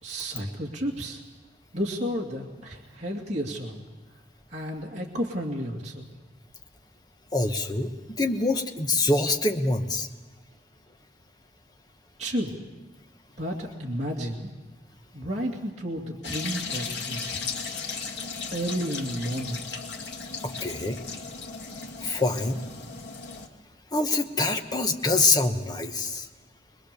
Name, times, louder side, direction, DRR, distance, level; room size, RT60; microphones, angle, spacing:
voice 1, 0.0-1.2 1.7-3.8 4.5-6.1 12.2-12.5 13.3-14.5 15.1-17.4 18.5-19.6, equal, 40° right, -3 dB, 2.4 m, -32 dB
voice 2, 7.3-10.1 20.4-21.0 22.0-22.6 23.9-26.3, left 2 dB, 25° left, 5 dB, 1.2 m, -25 dB
sound 1, 16.2-23.5, left 4 dB, 90° left, 2.0 m, -36 dB
23.5 x 21.5 x 6.8 m, 1.2 s
head